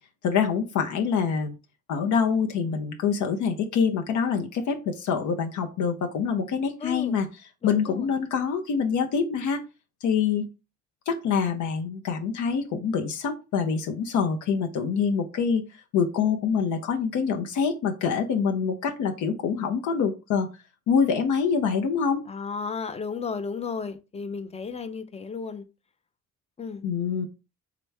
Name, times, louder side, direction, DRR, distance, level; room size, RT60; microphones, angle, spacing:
voice 1, 0.2-1.6 1.9-7.3 7.6-9.6 10.0-10.5 11.1-15.6 15.9-20.5 20.9-22.2 26.8-27.3, left 6 dB, 75° left, 0.7 m, -25 dB
voice 2, 6.8-7.2 7.6-8.1 22.3-25.6 26.6-26.8, left 5 dB, 20° left, 0.5 m, -34 dB
3.5 x 2.9 x 3.3 m
cardioid pair, 90°, 30 cm